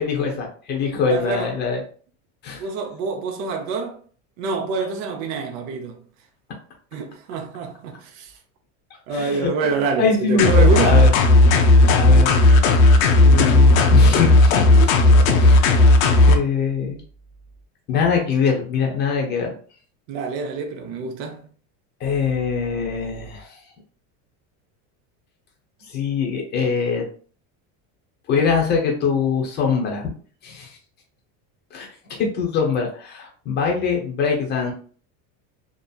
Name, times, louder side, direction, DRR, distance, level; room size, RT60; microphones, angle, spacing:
voice 1, 0.0-1.8 2.4-2.6 9.1-11.1 12.0-12.3 13.2-14.9 15.3-15.9 16.3-17.0 17.9-19.5 22.0-23.6 25.9-27.1 28.3-30.1 30.4-30.8 31.7-31.9 32.2-34.7, left 5 dB, 25° left, 0.7 m, -23 dB
voice 2, 1.1-1.5 2.5-4.0 4.4-6.0 6.9-8.3 9.1-11.1 20.1-21.5, right 5 dB, 45° right, 0.6 m, -26 dB
sound 1, 10.4-16.4, left 2 dB, 85° left, 0.7 m, -13 dB
2.7 x 2.5 x 2.3 m
cardioid pair, 160°, 39 cm